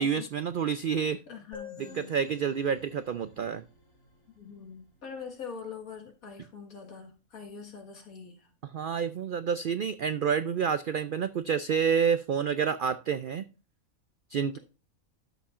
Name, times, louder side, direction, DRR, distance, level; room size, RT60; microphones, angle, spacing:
voice 1, 0.0-1.2 1.9-3.6 8.7-13.4 14.3-14.6, right 7 dB, 80° right, 12 dB, 0.4 m, -28 dB
voice 2, 1.3-2.2 4.4-8.5, left 6 dB, 85° left, 3 dB, 2.1 m, -44 dB
sound 1, 1.5-5.1, left 5 dB, 60° left, 4.4 m, -49 dB
12.5 x 7.1 x 2.5 m, 0.32 s
omnidirectional pair, 1.4 m